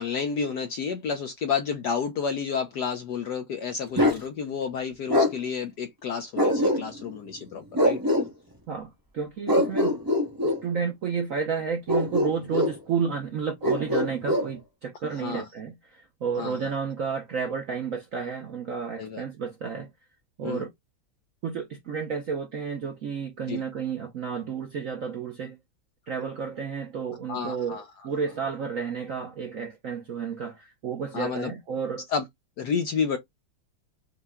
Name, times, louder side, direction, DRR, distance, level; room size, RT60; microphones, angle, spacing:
voice 1, 0.0-8.0 15.2-15.4 16.4-16.7 19.0-19.2 20.4-20.6 23.5-23.6 27.3-27.8 31.1-31.5 32.1-32.2 32.6-33.2, left 6 dB, 65° left, 1.0 m, -30 dB
Bark, 4.0-4.2 5.1-5.3 6.4-7.1 7.7-8.3 9.5-10.6 11.9-12.8 13.6-14.5, left 1 dB, 20° right, 0.6 m, -23 dB
voice 2, 8.7-10.0 10.4-19.9 20.4-20.7 21.4-25.6 26.1-32.1, right 6 dB, 75° right, 0.7 m, -31 dB
5.6 x 2.2 x 3.5 m
omnidirectional pair, 2.4 m